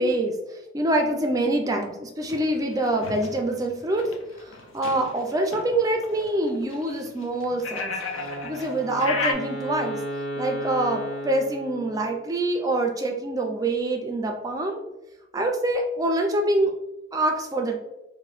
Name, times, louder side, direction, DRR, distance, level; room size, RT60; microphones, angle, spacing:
voice 1, 0.0-4.1 4.4-7.9 8.4-10.0 10.4-14.8 15.3-16.7 17.1-17.8, right 1 dB, 20° right, 2 dB, 0.3 m, -25 dB
sound 1, 2.2-9.3, left 3 dB, 90° left, 0.5 m, -34 dB
Wind instrument woodwind instrument, 8.1-12.3, right 1 dB, 45° left, 1.5 m, -34 dB
2.9 x 2.2 x 3.0 m, 0.93 s
head